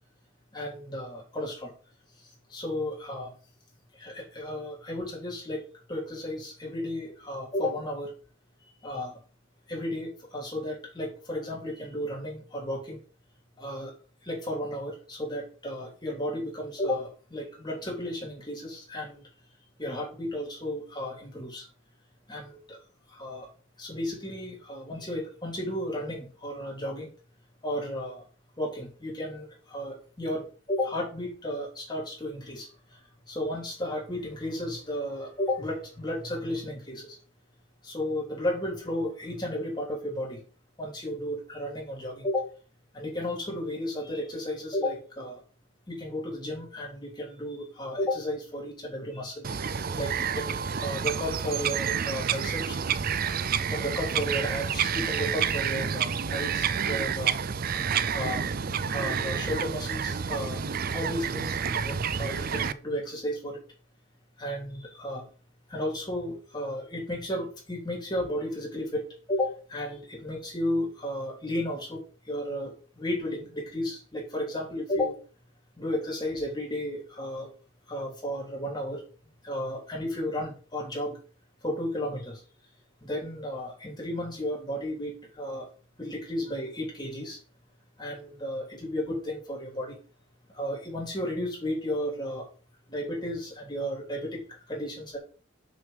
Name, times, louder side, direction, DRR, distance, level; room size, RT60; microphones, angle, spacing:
voice 1, 0.5-1.7 2.5-3.3 3.9-5.6 5.9-8.1 8.8-9.2 9.7-13.0 13.6-13.9 14.2-19.2 19.8-21.6 22.3-22.8 23.1-23.5 23.8-27.1 27.6-28.2 28.6-32.7 33.3-37.2 37.8-40.4 40.8-42.5 42.9-45.4 45.9-49.5 49.9-52.8 53.3-53.4 53.7-57.3 58.1-58.5 58.9-60.6 60.9-63.6 64.4-65.3 65.7-75.2 75.8-77.5 77.9-79.0 79.4-81.2 81.6-82.4 83.0-85.7 86.0-87.4 88.0-90.0 90.5-92.5 92.9-95.2, left 1 dB, 20° left, -1 dB, 3.2 m, -33 dB
Bird vocalization bird call bird song, 49.4-62.7, right 7 dB, 45° right, 0.4 m, -29 dB
6.5 x 6.1 x 5.2 m, 0.36 s
head